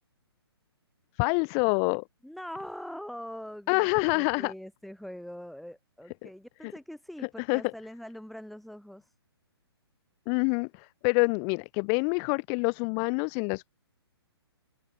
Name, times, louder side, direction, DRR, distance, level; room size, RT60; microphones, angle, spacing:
voice 1, 1.2-2.0 3.7-4.5 6.2-6.3 6.6-6.7 7.5-7.6 10.3-13.7, left 40 dB or more, 20° left, 0.3 m, -26 dB
voice 2, 2.2-9.1, equal, ahead, 1.0 m, -43 dB
figure-of-eight pair, 125°, 14 cm